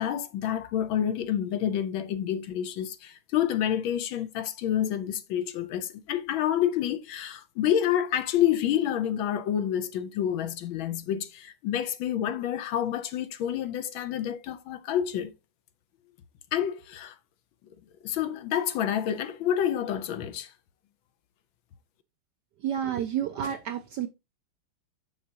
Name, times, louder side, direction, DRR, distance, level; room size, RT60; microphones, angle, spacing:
voice 1, 0.0-15.3 16.5-17.1 18.0-20.5, left 10 dB, 75° left, 1.4 m, -28 dB
voice 2, 22.6-24.1, right 9 dB, 75° right, 1.0 m, -30 dB
6.5 x 5.6 x 2.7 m
omnidirectional pair, 2.3 m